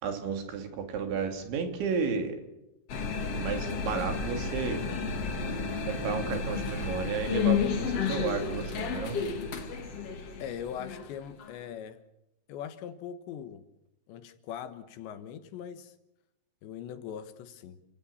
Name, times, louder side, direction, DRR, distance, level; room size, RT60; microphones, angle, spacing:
voice 1, 0.0-2.4 3.4-4.8 5.9-9.2, right 5 dB, 75° right, 5.0 m, -32 dB
sound 1, 2.9-11.5, left 5 dB, 45° left, 2.3 m, -32 dB
voice 2, 10.4-12.0 12.5-13.6 14.1-15.9 16.6-17.8, left 9 dB, 75° left, 3.4 m, -41 dB
29.5 x 17.0 x 7.1 m
omnidirectional pair, 5.5 m